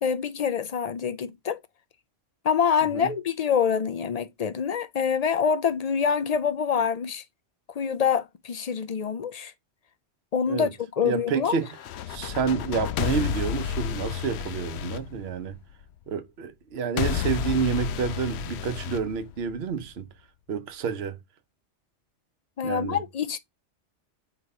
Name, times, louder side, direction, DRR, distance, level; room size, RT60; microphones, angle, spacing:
voice 1, 0.0-1.6 2.4-7.2 7.8-9.5 10.3-10.7 11.0-11.6 22.6-23.4, left 7 dB, 55° left, 0.4 m, -26 dB
voice 2, 11.0-11.7 12.1-15.6 16.1-20.1 20.5-21.2 22.6-23.0, right 6 dB, 60° right, 1.0 m, -29 dB
sound 1, 11.7-15.8 17.0-19.8, left 9 dB, 70° left, 0.8 m, -31 dB
4.6 x 4.2 x 5.2 m
omnidirectional pair, 1.2 m